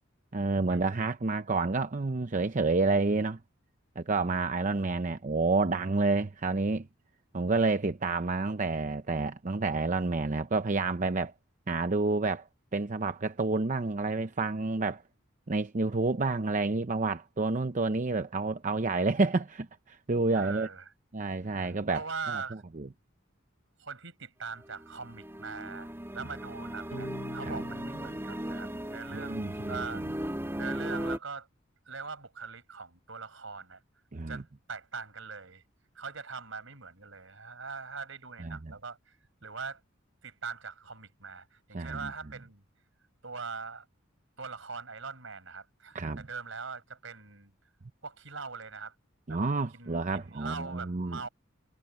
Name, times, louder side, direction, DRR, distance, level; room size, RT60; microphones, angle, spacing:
voice 1, 0.3-3.4 4.0-6.9 7.3-11.3 11.7-12.5 12.7-15.0 15.5-20.7 21.1-22.4 22.7-22.9 27.4-27.6 29.1-29.8 30.0-30.1 34.1-34.4 38.4-38.6 41.7-42.1 45.9-46.2 49.3-51.2, right 3 dB, 40° right, 0.7 m, -29 dB
voice 2, 20.3-20.9 21.5-22.6 23.8-30.3 30.6-31.5 31.9-33.8 34.3-35.6 35.9-39.2 39.4-39.8 40.2-42.6 43.2-43.9 44.4-47.5 48.0-48.9 49.3-49.4 49.7-51.3, right 5 dB, 70° right, 5.9 m, -42 dB
sound 1, 24.6-31.2, equal, 10° right, 3.2 m, -37 dB
sound 2, 26.9-29.5, left 1 dB, 75° left, 1.8 m, -47 dB
head